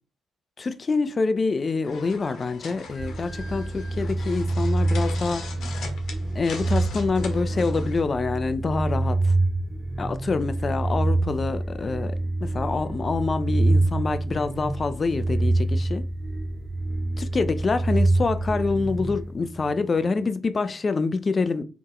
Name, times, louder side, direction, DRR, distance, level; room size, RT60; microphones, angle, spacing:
voice 1, 0.6-5.4 6.3-9.3 10.0-16.0 17.2-21.6, left 4 dB, 35° left, 0.5 m, -26 dB
sound 1, 1.8-8.0, left 4 dB, 65° left, 1.2 m, -40 dB
sound 2, 2.9-19.8, right 2 dB, 30° right, 0.4 m, -26 dB
3.5 x 3.1 x 4.7 m
cardioid pair, 90°, 0 cm